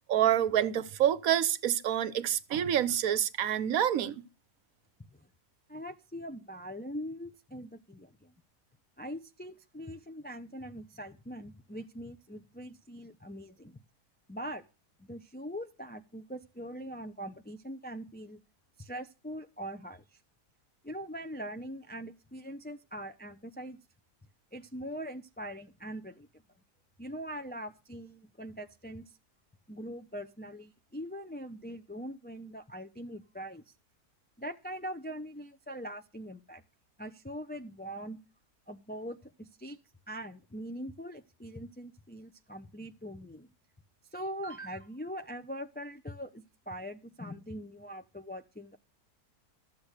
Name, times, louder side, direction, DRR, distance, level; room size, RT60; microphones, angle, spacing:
voice 1, 0.1-4.2, right 10 dB, 65° right, 1.2 m, -27 dB
voice 2, 5.7-8.3 9.0-13.8 14.3-14.6 15.0-18.4 18.8-20.2 20.8-23.8 24.5-26.3 27.0-29.2 29.7-33.6 34.4-36.6 37.0-38.2 38.7-39.8 40.1-43.5 44.1-48.8, equal, 10° left, 0.4 m, -42 dB
13.5 x 7.8 x 6.4 m
omnidirectional pair, 1.7 m